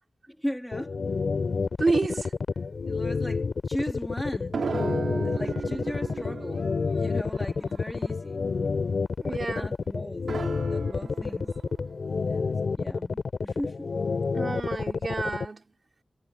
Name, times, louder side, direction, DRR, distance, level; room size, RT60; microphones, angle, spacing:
voice 1, 0.3-1.0 2.8-4.6 5.2-6.7 7.0-8.5 9.3-10.3 10.7-11.5 12.3-13.9 14.6-14.8, equal, 5° left, 1.7 m, -37 dB
sound 1, 0.7-15.5, left 4 dB, 50° left, 2.1 m, -29 dB
voice 2, 1.8-2.3 9.2-9.7 14.3-15.6, right 3 dB, 35° right, 3.4 m, -28 dB
sound 2, 4.5-7.1 7.3-7.4 7.7-7.8 10.3-12.4, right 5 dB, 65° right, 1.8 m, -36 dB
wide cardioid pair, 180°, 0 cm